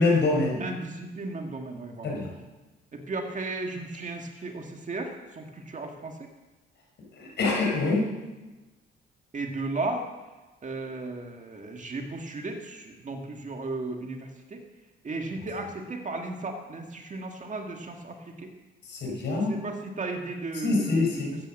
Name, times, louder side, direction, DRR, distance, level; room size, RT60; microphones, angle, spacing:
voice 1, 0.0-0.6 2.0-2.3 7.2-8.1 18.9-19.6 20.6-21.4, left 3 dB, 60° left, 0 dB, 4.8 m, -25 dB
voice 2, 0.6-2.2 2.9-6.3 9.3-10.1 10.6-14.6 15.0-18.5 19.3-21.2, right 3 dB, 40° right, 3 dB, 1.9 m, -35 dB
13.0 x 8.9 x 7.6 m, 1.2 s
cardioid pair, 90°, 20 cm